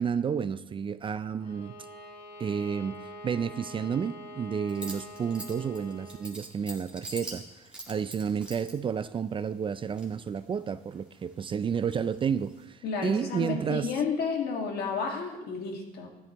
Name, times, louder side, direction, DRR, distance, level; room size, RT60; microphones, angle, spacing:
voice 1, 0.0-1.7 2.4-7.4 7.9-13.9, right 7 dB, 30° right, 13 dB, 0.4 m, -31 dB
Bowed string instrument, 1.4-6.3, equal, 45° left, 4.0 m, -45 dB
sound 1, 4.7-8.7 9.7-10.5 10.9-12.6, right 1 dB, 5° right, 2.0 m, -44 dB
voice 2, 12.8-16.1, left 5 dB, 70° left, 1 dB, 2.0 m, -31 dB
13.0 x 11.0 x 3.0 m, 1.0 s
cardioid pair, 110°, 17 cm